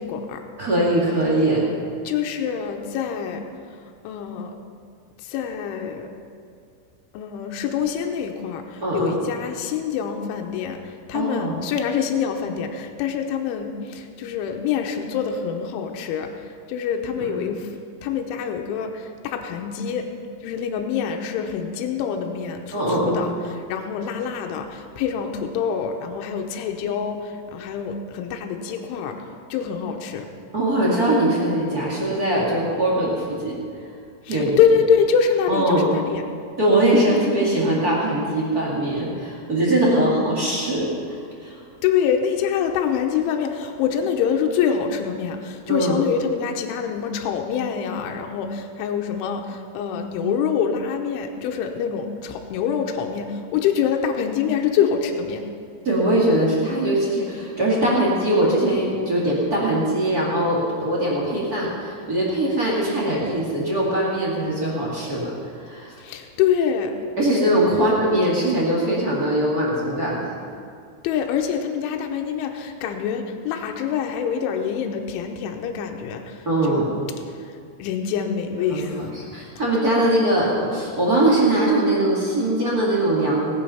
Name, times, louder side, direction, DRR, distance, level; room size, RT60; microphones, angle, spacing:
voice 1, 0.0-0.4 2.0-3.4 4.0-4.6 5.2-6.1 7.1-17.7 18.0-20.1 20.4-23.3 23.7-29.2 29.5-30.3 34.2-36.2 39.8-40.1 41.8-55.4 66.0-66.9 71.0-76.8 77.8-79.1, left 7 dB, 85° left, 3 dB, 3.3 m, -25 dB
voice 2, 0.6-1.7 8.8-9.2 11.1-11.6 17.2-17.4 22.7-23.2 30.5-33.6 34.3-34.6 35.5-36.0 36.6-41.6 45.7-46.0 55.8-65.9 67.2-70.3 76.4-76.9 78.7-83.5, right 1 dB, 35° right, -5 dB, 1.6 m, -21 dB
18.5 x 8.8 x 5.7 m, 2.3 s
omnidirectional pair, 5.5 m